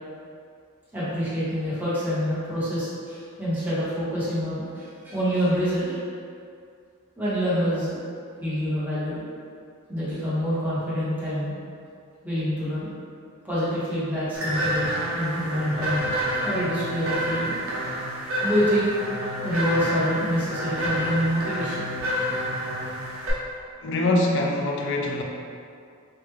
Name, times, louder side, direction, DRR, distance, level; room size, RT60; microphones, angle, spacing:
voice 1, 0.9-6.0 7.2-8.0 8.4-9.2 9.9-11.5 12.2-12.9 13.4-16.1 16.4-17.6 18.4-18.9 19.4-21.9, equal, 10° right, -12 dB, 1.1 m, -26 dB
sound 1, 14.3-23.3, equal, 70° right, 0.8 m, -28 dB
voice 2, 23.8-25.2, left 2 dB, 60° left, 1 dB, 0.4 m, -23 dB
3.4 x 2.4 x 3.1 m, 2.3 s
head